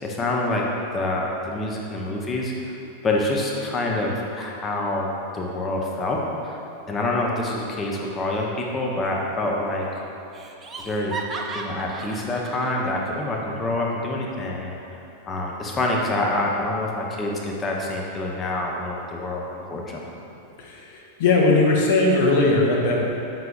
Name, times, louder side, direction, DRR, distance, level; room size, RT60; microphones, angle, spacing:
voice 1, 0.0-0.6 0.9-2.7 3.0-6.6 6.9-9.9 10.8-11.2 11.5-14.8 15.3-20.1, left 2 dB, 20° left, -2 dB, 0.8 m, -26 dB
Laughter, 9.0-9.6 9.8-9.9 10.3-12.8, right 3 dB, 20° right, 0.5 m, -35 dB
voice 2, 20.6-23.0, left 2 dB, 55° left, -2 dB, 0.7 m, -19 dB
7.6 x 5.7 x 2.4 m, 2.7 s
figure-of-eight pair, 90°, 0 cm